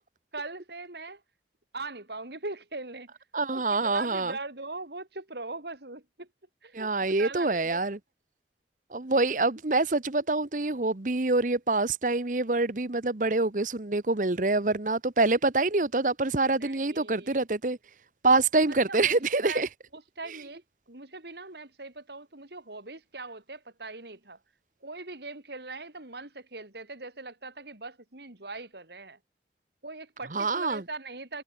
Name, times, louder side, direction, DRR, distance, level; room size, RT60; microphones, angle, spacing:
voice 1, 0.3-1.2 1.7-3.1 3.5-6.3 6.6-7.9 16.6-17.4 18.9-24.4 24.8-29.2 29.8-31.4, right 3 dB, 70° right, 3.3 m, -41 dB
voice 2, 3.3-4.3 6.7-8.0 8.9-17.8 18.2-19.7 30.3-30.8, right 3 dB, 45° right, 1.1 m, -26 dB
head